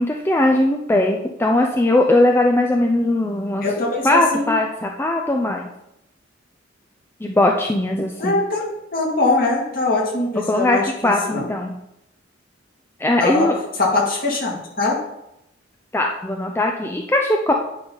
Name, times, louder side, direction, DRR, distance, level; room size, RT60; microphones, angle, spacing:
voice 1, 0.0-3.6 4.0-5.7 7.2-8.4 10.5-11.8 13.0-13.5 15.9-17.5, left 1 dB, 10° left, 1 dB, 0.5 m, -19 dB
voice 2, 3.6-4.5 8.2-11.5 13.2-13.5 13.8-15.0, left 2 dB, 50° left, -2 dB, 2.3 m, -22 dB
9.9 x 3.9 x 5.6 m, 0.84 s
head